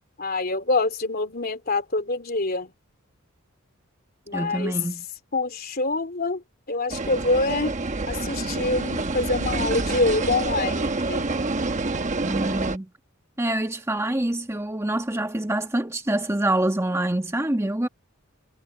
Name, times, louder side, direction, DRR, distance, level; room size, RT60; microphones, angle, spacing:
voice 1, 0.2-2.7 4.3-4.7 5.3-6.4 6.7-7.8 8.1-11.3, left 2 dB, 45° left, 3.1 m, -25 dB
voice 2, 4.3-5.0 12.3-12.9 13.4-17.9, right 1 dB, 15° right, 1.3 m, -26 dB
sound 1, 6.9-12.8, right 3 dB, 35° right, 1.0 m, -27 dB
head